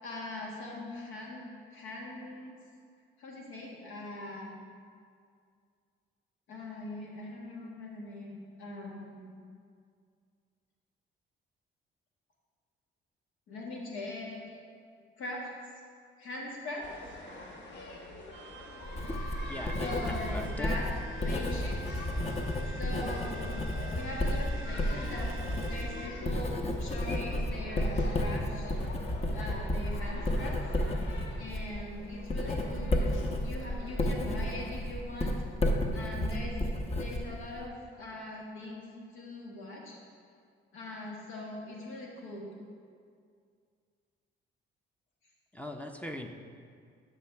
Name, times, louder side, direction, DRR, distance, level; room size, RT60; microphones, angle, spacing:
voice 1, 0.0-2.6 3.2-4.6 6.5-9.3 13.5-14.6 15.2-15.5 16.2-16.9 19.8-20.9 21.2-21.8 22.7-23.6 23.9-25.3 25.6-28.7 29.3-30.6 31.4-35.4 35.9-36.6 37.0-38.9 39.1-40.0 40.7-42.5, left 1 dB, 90° left, -2 dB, 1.6 m, -41 dB
sound 1, 16.8-34.7, left 2 dB, 65° left, 1.2 m, -46 dB
sound 2, 18.3-26.1, equal, 90° right, 0.5 m, -48 dB
Writing, 18.8-37.7, left 1 dB, 30° left, 0.9 m, -32 dB
voice 2, 19.5-20.7 45.5-46.3, equal, 5° left, 4 dB, 0.5 m, -41 dB
11.0 x 5.7 x 3.4 m, 2.2 s
cardioid pair, 90°, 20 cm